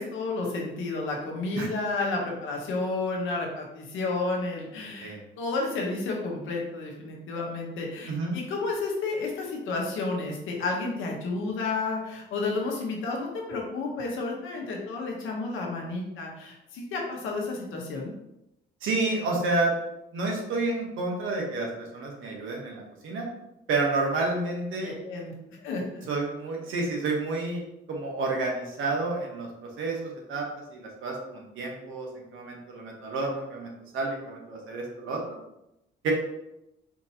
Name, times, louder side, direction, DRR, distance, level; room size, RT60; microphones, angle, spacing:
voice 1, 0.0-18.1 24.7-25.3 25.6-26.1, left 3 dB, 85° left, 0 dB, 1.1 m, -31 dB
voice 2, 8.0-8.4 18.8-19.7 20.1-23.3 23.7-24.9 26.1-27.6 27.9-35.4 36.0-36.1, right 3 dB, 80° right, 0 dB, 1.1 m, -30 dB
4.4 x 2.9 x 2.8 m, 0.87 s
cardioid pair, 90°, 20 cm